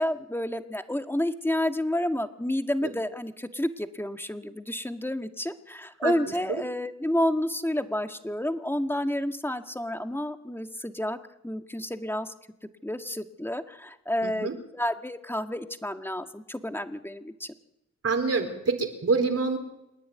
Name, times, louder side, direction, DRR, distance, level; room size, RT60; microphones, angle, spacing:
voice 1, 0.0-11.2 11.4-12.3 12.8-17.5, left 1 dB, 10° left, 7 dB, 1.9 m, -30 dB
voice 2, 14.2-14.5 18.0-19.6, right 4 dB, 55° right, 6 dB, 4.2 m, -26 dB
28.0 x 10.0 x 9.6 m, 0.90 s
cardioid pair, 50°, 29 cm